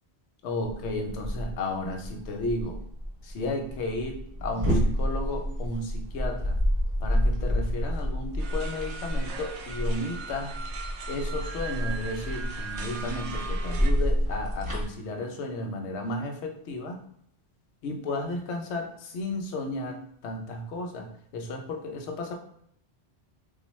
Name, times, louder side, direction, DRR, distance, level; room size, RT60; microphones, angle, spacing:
voice 1, 0.4-2.8 3.2-6.6 7.0-10.5 11.1-17.0 17.8-22.3, left 2 dB, 85° left, 3 dB, 0.9 m, -33 dB
sound 1, 0.6-14.8, equal, 20° right, 0.8 m, -29 dB
sound 2, 8.4-13.9, right 5 dB, 85° right, 0.9 m, -39 dB
3.8 x 2.3 x 3.0 m, 0.70 s
omnidirectional pair, 1.1 m